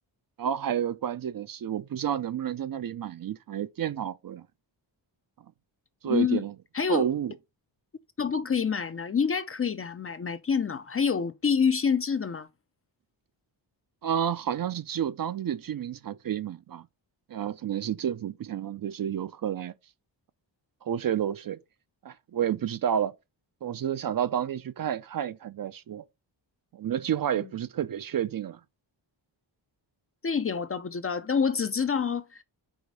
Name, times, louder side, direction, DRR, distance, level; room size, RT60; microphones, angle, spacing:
voice 1, 0.4-4.4 6.0-6.5 6.9-7.3 14.0-16.9 17.3-19.7 20.8-21.6 22.0-23.1 23.6-26.0 26.7-28.6, right 9 dB, 50° right, 0.5 m, -30 dB
voice 2, 6.0-6.4 6.7-7.1 8.2-12.5 30.2-32.4, left 6 dB, 30° left, 0.4 m, -27 dB
4.9 x 4.0 x 5.2 m
wide cardioid pair, 135°, 46 cm